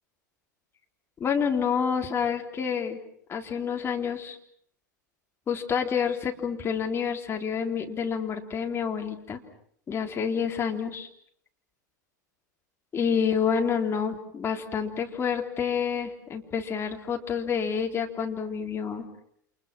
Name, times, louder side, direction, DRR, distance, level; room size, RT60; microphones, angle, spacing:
voice 1, 1.2-3.0 3.3-4.4 5.5-9.4 9.9-11.1 12.9-19.1, left 7 dB, 25° left, 3 dB, 3.7 m, -28 dB
29.5 x 28.0 x 6.1 m, 0.67 s
figure-of-eight pair, 90°, 10 cm